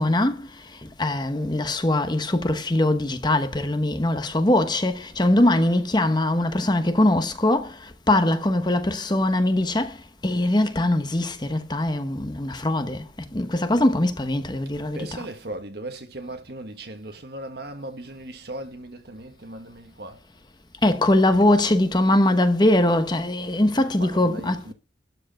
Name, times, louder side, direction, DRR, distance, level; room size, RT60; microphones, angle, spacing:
voice 1, 0.0-15.3 20.8-24.7, left 1 dB, 25° left, 1.0 m, -22 dB
voice 2, 14.9-20.2 23.5-24.7, right 1 dB, 55° right, 1.5 m, -38 dB
12.5 x 4.7 x 7.6 m
head